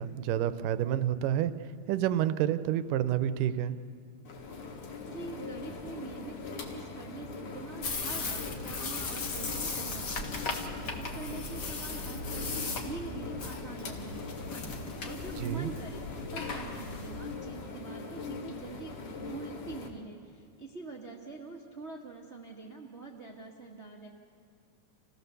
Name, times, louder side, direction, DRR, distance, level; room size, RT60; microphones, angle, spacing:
voice 1, 0.0-1.5 1.9-3.8 15.4-15.7, right 11 dB, 85° right, 12 dB, 2.3 m, -29 dB
sound 1, 4.3-19.9, left 4 dB, 70° left, 3.3 m, -42 dB
voice 2, 5.1-14.6 15.0-24.1, right 4 dB, 40° right, -1 dB, 1.0 m, -45 dB
sound 2, 7.8-17.3, left 3 dB, 45° left, 1.5 m, -37 dB
28.0 x 16.5 x 6.9 m, 2.2 s
omnidirectional pair, 3.8 m